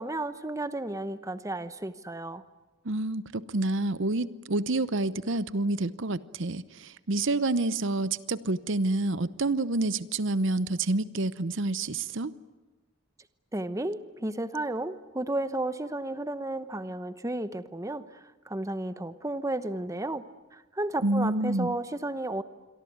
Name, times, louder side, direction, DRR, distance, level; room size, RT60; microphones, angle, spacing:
voice 1, 0.0-2.4 13.5-18.0 18.5-20.2 20.5-22.4, right 2 dB, 15° right, 12 dB, 1.0 m, -33 dB
voice 2, 2.8-12.3 21.0-21.7, right 2 dB, 65° right, 15 dB, 0.9 m, -28 dB
27.0 x 23.5 x 9.4 m, 1.2 s
head